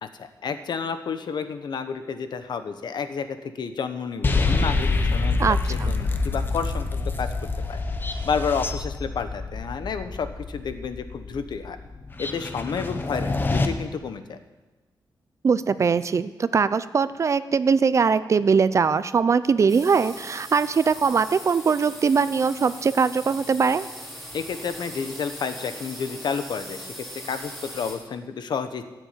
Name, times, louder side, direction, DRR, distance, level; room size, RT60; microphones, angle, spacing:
voice 1, 0.2-5.4 5.7-7.3 7.7-7.8 8.3-11.8 12.2-14.4 24.3-28.8, left 6 dB, 65° left, 9 dB, 1.2 m, -30 dB
sound 1, 4.2-13.7, left 3 dB, 25° left, 1.0 m, -26 dB
voice 2, 5.4-5.9 15.4-23.9, right 5 dB, 40° right, 15 dB, 0.5 m, -21 dB
sound 2, 19.7-27.9, equal, ahead, 3.5 m, -40 dB
15.0 x 8.0 x 9.1 m, 1.1 s
wide cardioid pair, 170°, 8 cm